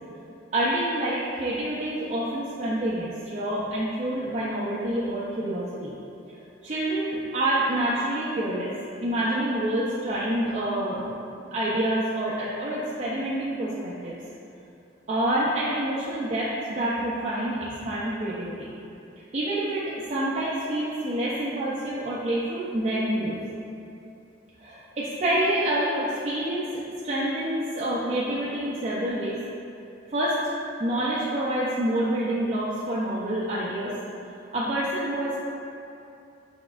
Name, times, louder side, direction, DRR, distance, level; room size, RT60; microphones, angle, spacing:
voice 1, 0.5-5.9 6.6-8.7 9.0-11.2 11.5-14.2 15.1-18.7 19.3-23.4 24.6-26.7 27.0-29.4 30.1-30.5 30.8-33.9 34.5-35.4, right 1 dB, 40° right, -7 dB, 0.4 m, -27 dB
6.1 x 3.5 x 2.4 m, 2.6 s
head